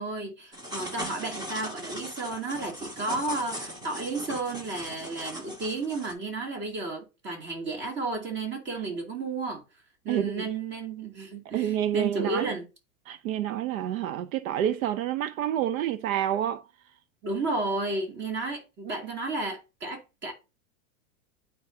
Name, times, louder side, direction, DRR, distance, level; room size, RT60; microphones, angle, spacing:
voice 1, 0.0-9.6 10.0-12.6 17.2-20.3, right 3 dB, 25° right, 2.5 m, -32 dB
sound 1, 0.5-6.1, equal, 10° right, 1.1 m, -39 dB
voice 2, 10.1-10.5 11.5-12.5 13.1-16.7, right 11 dB, 75° right, 0.7 m, -28 dB
9.4 x 4.6 x 2.7 m
supercardioid pair, 140°, 41 cm